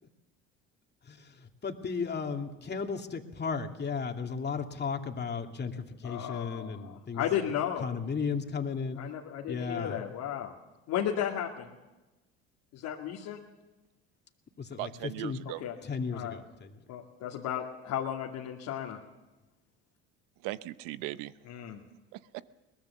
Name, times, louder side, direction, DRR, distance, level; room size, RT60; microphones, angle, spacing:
voice 1, 1.1-7.2 7.8-9.0 9.5-10.0 14.6-15.4 15.8-16.8, left 5 dB, 30° left, 4 dB, 2.5 m, -35 dB
voice 2, 6.0-7.8 9.0-10.5 10.9-11.7 12.7-13.4 15.6-15.7 16.1-16.4 16.9-19.0 21.5-21.8, left 10 dB, 65° left, -1 dB, 2.3 m, -34 dB
voice 3, 14.8-15.6 20.4-21.3 22.1-22.4, right 17 dB, 70° right, 16 dB, 0.9 m, -38 dB
22.0 x 19.5 x 7.2 m, 1.1 s
hypercardioid pair, 65°, 32 cm